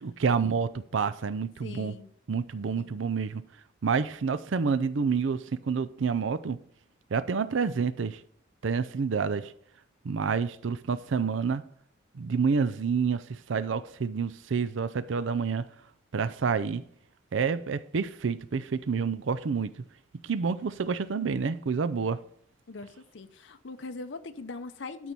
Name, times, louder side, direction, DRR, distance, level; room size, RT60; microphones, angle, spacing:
voice 1, 0.0-2.0 2.3-3.4 3.8-6.6 7.1-8.2 8.6-9.5 10.0-11.6 12.1-15.6 16.1-16.8 17.3-19.7 20.2-22.2, right 5 dB, 75° right, 0.5 m, -28 dB
voice 2, 1.6-2.1 2.8-3.0 22.7-22.9 23.1-25.1, left 3 dB, 70° left, 0.7 m, -41 dB
12.5 x 4.6 x 5.3 m
head